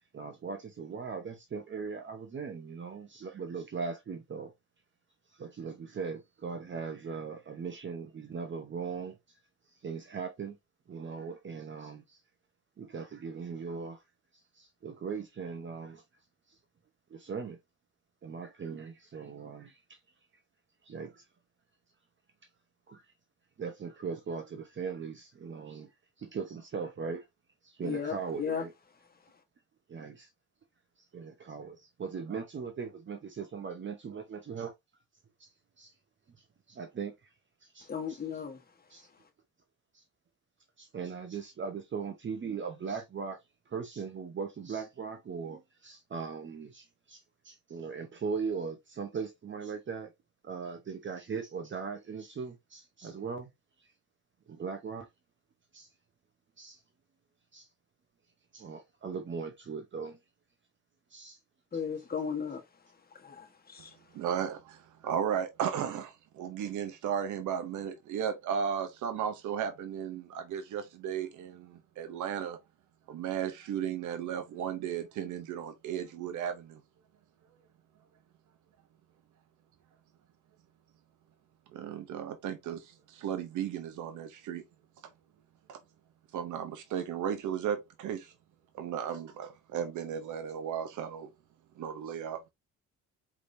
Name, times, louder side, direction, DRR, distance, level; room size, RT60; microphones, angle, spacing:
voice 1, 0.1-4.5 5.3-9.2 9.8-10.6 10.9-12.2 12.8-14.0 14.5-16.0 17.1-17.6 18.2-20.0 20.8-21.2 22.9-23.0 23.6-25.9 26.2-27.3 27.6-28.7 29.9-30.3 31.1-34.7 35.4-35.5 35.8-35.9 36.7-37.1 37.6-38.2 38.9-39.1 39.9-40.0 40.8-43.4 43.7-50.1 50.4-53.5 54.5-55.1 55.7-55.9 56.6-56.8 57.5-57.7 58.5-60.2 61.1-61.4 61.7-61.8, right 5 dB, 40° right, 0.9 m, -39 dB
voice 2, 27.8-28.6 37.9-38.6 61.7-62.6 63.2-63.9, left 6 dB, 30° left, 1.3 m, -35 dB
voice 3, 64.1-72.6 73.1-76.8 81.7-84.6 85.7-85.8 86.3-88.3 88.8-91.3 91.8-92.5, right 8 dB, 75° right, 0.7 m, -35 dB
4.9 x 3.4 x 2.6 m
cardioid pair, 90°, 30 cm